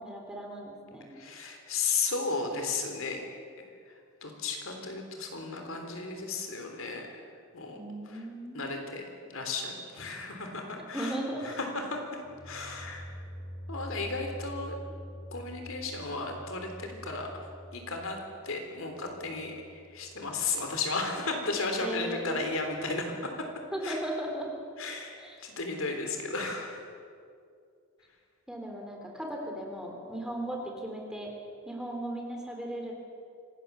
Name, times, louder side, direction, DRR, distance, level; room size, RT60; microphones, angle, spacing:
voice 1, 0.0-1.0 7.7-8.7 10.9-11.6 21.8-22.4 23.7-24.5 25.2-25.4 28.5-31.3 31.6-32.9, right 1 dB, 5° right, 0 dB, 3.4 m, -37 dB
voice 2, 1.1-3.3 3.9-4.0 4.2-7.1 7.5-7.8 8.1-8.3 8.5-12.0 12.4-13.1 13.7-14.8 15.3-17.3 17.7-23.3 23.8-24.0 24.8-26.8, left 3 dB, 70° left, 3 dB, 3.6 m, -34 dB
sound 1, 12.1-21.1, equal, 40° left, 5.6 m, -46 dB
26.0 x 18.0 x 7.0 m, 2.4 s
head